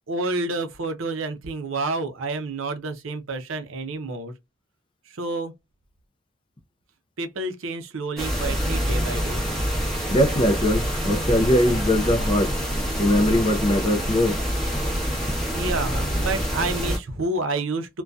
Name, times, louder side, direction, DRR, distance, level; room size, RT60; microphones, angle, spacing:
voice 1, 0.1-4.3 5.1-5.5 7.2-9.4 15.5-18.0, right 2 dB, 65° right, 0.6 m, -29 dB
sound 1, 8.2-17.0, equal, ahead, 0.8 m, -26 dB
voice 2, 10.1-12.5 13.0-14.4, left 1 dB, 25° left, 0.4 m, -21 dB
2.6 x 2.2 x 2.2 m
head